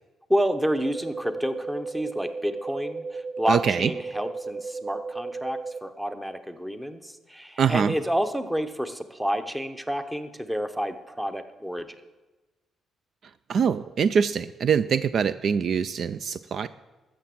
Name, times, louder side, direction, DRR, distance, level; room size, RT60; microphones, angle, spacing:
voice 1, 0.3-11.9, equal, 5° right, 10 dB, 0.9 m, -29 dB
sound 1, 0.8-5.8, right 3 dB, 35° right, 0.8 m, -35 dB
voice 2, 3.5-3.9 7.6-7.9 13.5-16.7, right 7 dB, 55° right, 14 dB, 0.4 m, -24 dB
13.0 x 7.2 x 7.7 m, 1.2 s
cardioid pair, 120°, 0 cm